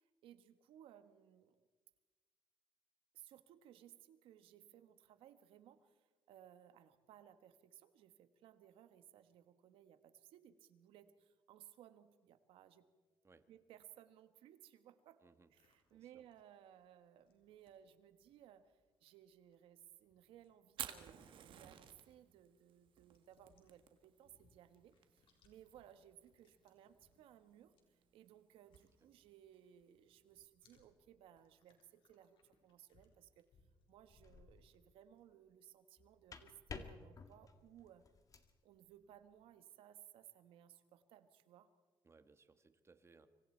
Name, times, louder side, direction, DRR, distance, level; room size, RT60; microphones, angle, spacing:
voice 1, 0.0-1.7 3.1-12.9 13.5-15.2 15.5-33.5 33.9-38.0 38.6-41.7, right 11 dB, 90° right, 10 dB, 1.4 m, -62 dB
sound 1, 15.5-29.8 30.0-35.2, left 4 dB, 75° left, 4.0 m, -76 dB
voice 2, 15.9-16.2 42.0-43.3, right 4 dB, 30° right, 9 dB, 1.6 m, -66 dB
Fire, 20.7-30.5, right 9 dB, 70° right, 1.8 m, -55 dB
sound 2, 34.1-34.6 36.0-38.6, left 4 dB, 40° left, 1.8 m, -53 dB
26.0 x 24.0 x 4.5 m, 1.4 s
cardioid pair, 90°, 9 cm